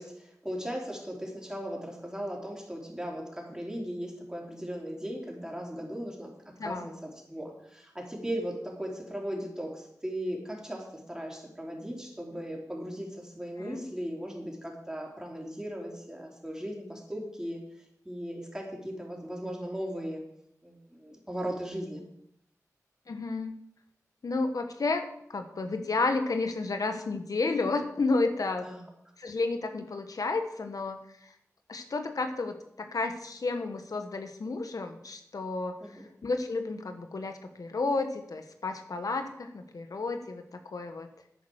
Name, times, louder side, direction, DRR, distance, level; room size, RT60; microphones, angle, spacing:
voice 1, 0.0-6.3 6.6-17.6 18.0-20.2 20.6-22.0 28.6-28.8 35.8-36.0, equal, 10° right, -1 dB, 4.0 m, -37 dB
voice 2, 23.1-23.6 24.2-25.0 25.3-28.7 29.2-31.3 31.7-41.1, left 3 dB, 75° left, 6 dB, 1.2 m, -31 dB
10.5 x 8.5 x 6.5 m, 0.74 s
wide cardioid pair, 50°, 6 cm